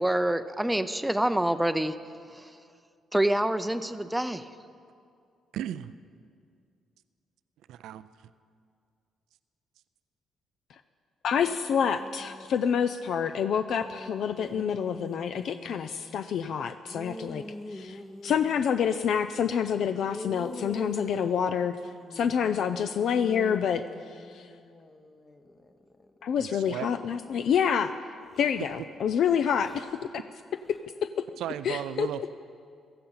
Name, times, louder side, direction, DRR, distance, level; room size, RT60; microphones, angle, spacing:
voice 1, 0.0-1.9 2.3-2.5 3.1-4.5, right 1 dB, 5° right, 11 dB, 0.5 m, -26 dB
voice 2, 5.5-5.9 7.7-8.0 26.4-26.9 31.4-32.3, right 11 dB, 85° right, 13 dB, 0.4 m, -35 dB
voice 3, 11.2-17.4 17.7-21.8 22.1-24.5 26.2-27.9 28.4-29.9 30.7-31.1 31.6-32.1, left 7 dB, 70° left, 10 dB, 0.5 m, -27 dB
sound 1, 11.4-12.9 13.4-16.4 16.9-18.7 20.0-27.6 28.3-28.8 29.5-29.9 30.6-30.8, left 1 dB, 25° left, 1.1 m, -45 dB
16.0 x 14.0 x 5.7 m, 2.3 s
cardioid pair, 90°, 0 cm